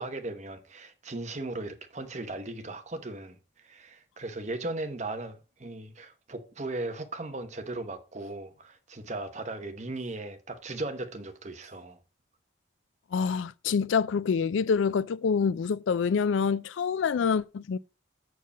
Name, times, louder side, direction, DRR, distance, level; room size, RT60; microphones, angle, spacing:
voice 1, 0.0-12.0, right 2 dB, 35° right, 0.9 m, -37 dB
voice 2, 13.1-17.8, left 6 dB, 80° left, 0.4 m, -26 dB
7.0 x 4.6 x 5.8 m
head